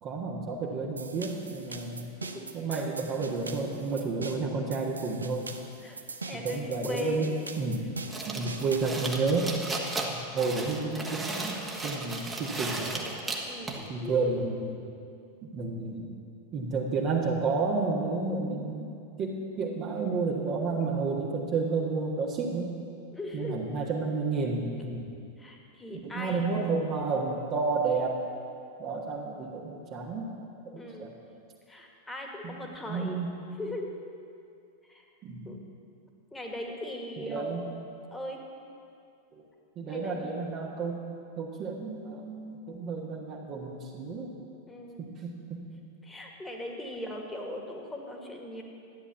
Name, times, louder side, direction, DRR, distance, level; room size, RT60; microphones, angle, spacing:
voice 1, 0.0-2.1 2.5-5.5 6.4-7.9 8.2-9.5 10.3-13.1 13.9-14.7 15.5-16.1 16.5-18.9 19.2-22.7 23.3-25.1 25.9-28.2 28.8-30.3 31.0-31.1 32.4-32.5 32.9-33.3 35.2-35.6 37.2-37.6 39.7-41.0 41.4-44.3 45.0-45.6, right 4 dB, 35° right, -2 dB, 1.6 m, -31 dB
sound 1, 1.0-9.0, right 3 dB, 75° right, 0.8 m, -41 dB
voice 2, 5.8-7.3 8.2-8.6 9.8-9.9 13.5-14.4 23.1-23.6 25.4-26.5 30.8-31.1 31.7-33.2 33.6-33.9 34.8-35.0 35.5-35.6 36.3-37.5 38.1-38.4 39.9-40.3 44.7-45.0 46.0-48.6, left 1 dB, 10° left, 1 dB, 2.0 m, -39 dB
sound 2, 8.1-13.9, right 2 dB, 10° right, 1.6 m, -35 dB
13.0 x 9.9 x 7.0 m, 2.5 s
figure-of-eight pair, 90°, 0 cm